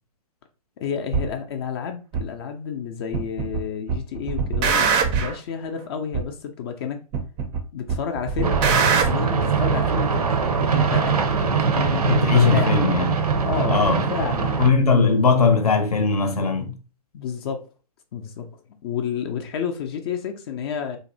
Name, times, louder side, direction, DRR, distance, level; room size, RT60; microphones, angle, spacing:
voice 1, 0.8-7.0 7.7-8.6 8.9-12.9 13.4-14.7 17.1-17.7 18.1-21.0, left 7 dB, 40° left, 0.4 m, -31 dB
sound 1, 1.1-1.3 2.1-2.2 3.1-3.6 3.9-5.4 6.1-6.2 7.1-7.6 7.9-9.1, right 6 dB, 25° right, 0.4 m, -22 dB
sound 2, 8.4-14.7, right 5 dB, 80° right, 0.5 m, -22 dB
voice 2, 12.1-13.1 13.7-14.0 14.6-16.7, left 5 dB, 80° left, 0.7 m, -19 dB
2.6 x 2.0 x 2.6 m
hypercardioid pair, 120°, 19 cm